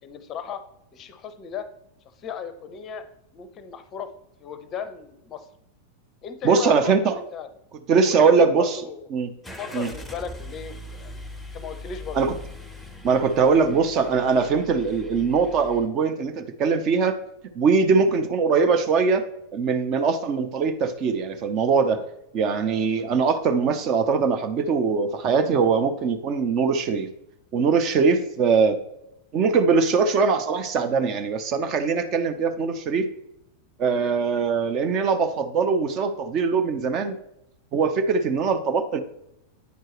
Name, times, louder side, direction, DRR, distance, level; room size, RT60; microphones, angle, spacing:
voice 1, 0.0-0.6 0.9-1.7 2.2-3.1 3.3-4.1 4.4-5.5 6.2-7.5 8.1-9.1 9.6-11.2 11.5-12.2, left 7 dB, 30° left, 11 dB, 0.6 m, -36 dB
voice 2, 6.4-7.1 7.9-8.8 9.1-9.3 9.7-9.9 12.1-12.3 13.0-17.2 17.5-19.2 19.5-22.0 22.3-27.1 27.5-28.8 29.3-33.1 33.8-37.2 37.7-39.0, right 5 dB, 35° right, 8 dB, 0.6 m, -21 dB
Car / Engine starting, 9.4-15.9, left 1 dB, ahead, 0.8 m, -41 dB
9.3 x 4.5 x 3.0 m, 0.80 s
figure-of-eight pair, 90°, 0 cm